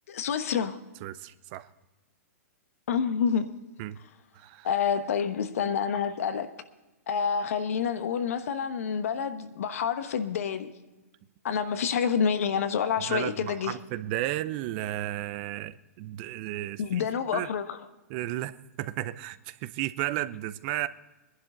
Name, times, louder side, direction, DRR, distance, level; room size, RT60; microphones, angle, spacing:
voice 1, 0.1-0.8 2.9-3.5 4.6-6.5 7.1-10.7 11.4-13.8 16.8-17.9, left 7 dB, 70° left, 1.2 m, -28 dB
voice 2, 1.0-1.7 3.8-4.0 4.3-4.7 13.1-17.1 17.3-17.5 18.1-20.9, right 15 dB, 40° right, 0.6 m, -33 dB
20.0 x 11.0 x 3.9 m
hypercardioid pair, 125°, 8 cm